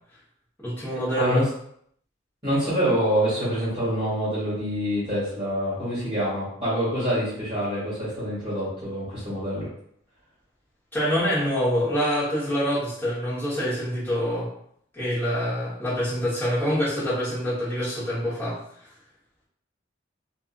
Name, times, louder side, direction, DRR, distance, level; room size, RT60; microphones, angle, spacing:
voice 1, 0.6-1.5 10.9-14.5 14.9-18.6, equal, 10° left, -10 dB, 1.2 m, -26 dB
voice 2, 2.4-9.7, equal, 25° right, -11 dB, 1.3 m, -26 dB
2.6 x 2.5 x 2.5 m, 0.68 s
head